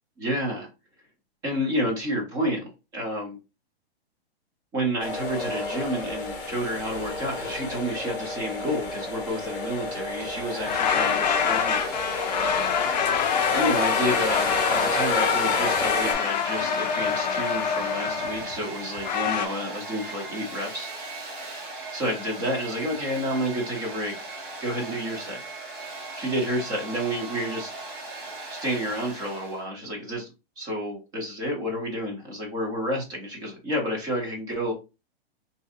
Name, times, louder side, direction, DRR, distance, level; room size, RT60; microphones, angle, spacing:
voice 1, 0.2-0.7 1.4-3.4 4.7-12.3 13.5-20.9 21.9-24.2 24.6-25.4 26.2-27.7 28.5-30.3 30.6-34.7, equal, 10° right, 0.6 m, -30 dB
sound 1, 5.0-16.1, left 2 dB, 25° left, 1.0 m, -31 dB
Domestic sounds home sounds, 10.1-29.6, right 2 dB, 50° right, 1.3 m, -38 dB
sound 2, 10.6-19.5, left 8 dB, 45° left, 0.4 m, -26 dB
3.8 x 2.7 x 2.4 m
hypercardioid pair, 165°, 31 cm